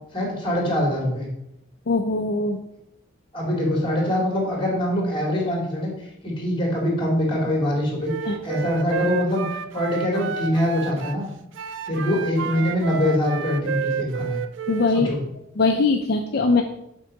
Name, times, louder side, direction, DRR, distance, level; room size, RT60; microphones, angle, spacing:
voice 1, 0.1-1.3 3.3-11.3 11.9-14.4 14.9-15.2, left 1 dB, 25° left, -1 dB, 2.3 m, -24 dB
voice 2, 1.9-2.6 8.3-8.4 14.7-15.1 15.6-16.6, left 3 dB, 50° left, 3 dB, 0.5 m, -21 dB
Wind instrument woodwind instrument, 8.0-11.2 11.5-15.0, right 6 dB, 65° right, 0.4 m, -30 dB
7.4 x 4.5 x 5.1 m, 0.81 s
head